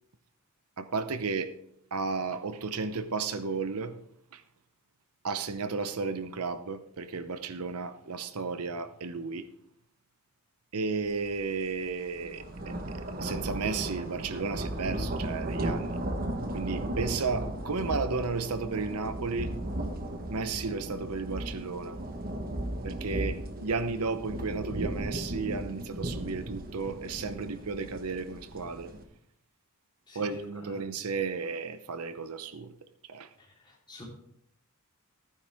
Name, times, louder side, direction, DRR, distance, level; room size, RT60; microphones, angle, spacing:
voice 1, 0.8-1.5 1.9-4.0 4.3-4.4 5.2-9.5 10.7-16.0 16.5-19.5 20.3-22.0 22.8-28.9 30.1-32.7 33.0-33.3, right 4 dB, 80° right, 11 dB, 0.8 m, -33 dB
sound 1, 11.2-11.4 11.8-29.0, right 1 dB, 40° right, 1.2 m, -36 dB
voice 2, 30.1-30.8 33.4-34.0, right 1 dB, 20° left, -4 dB, 3.7 m, -44 dB
15.0 x 9.6 x 3.5 m, 0.72 s
head